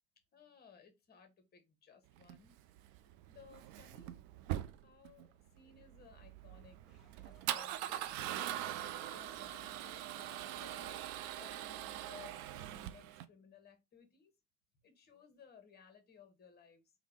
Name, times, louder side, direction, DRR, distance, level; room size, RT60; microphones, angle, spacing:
voice 1, 0.3-2.5 3.3-4.2 4.8-5.3 5.5-6.8 7.2-11.0 11.3-14.3 14.8-16.9, left 6 dB, 20° left, 1.1 m, -60 dB
Male speech man speaking / Car / Engine starting, 2.2-13.2, right 13 dB, 45° right, 0.5 m, -43 dB
sound 1, 6.9-12.3, right 1 dB, ahead, 1.2 m, -65 dB
3.4 x 2.3 x 3.5 m
hypercardioid pair, 85°, 48 cm